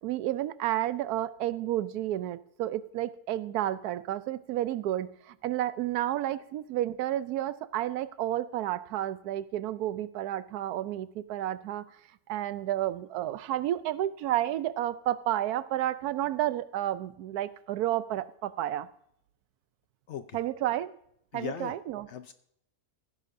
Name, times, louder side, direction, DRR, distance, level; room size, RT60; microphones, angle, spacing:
voice 1, 0.0-11.9 12.3-18.9 20.3-20.9 21.3-22.1, right 13 dB, 85° right, 15 dB, 1.1 m, -31 dB
voice 2, 20.1-20.4 21.3-21.8 22.1-22.3, left 9 dB, 65° left, 11 dB, 0.7 m, -38 dB
16.0 x 9.9 x 2.6 m, 0.72 s
omnidirectional pair, 1.6 m